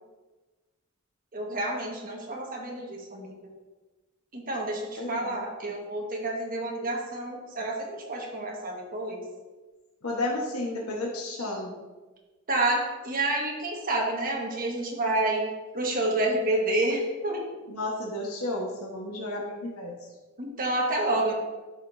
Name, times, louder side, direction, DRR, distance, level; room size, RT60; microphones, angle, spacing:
voice 1, 1.3-3.4 4.3-9.2 11.4-11.5 12.5-15.5 15.7-17.4 20.4-21.3, right 2 dB, 40° right, -1 dB, 1.5 m, -29 dB
voice 2, 5.0-5.4 10.0-11.8 17.7-19.9, left 2 dB, 90° left, -2 dB, 1.3 m, -32 dB
12.0 x 5.2 x 2.7 m, 1.2 s
head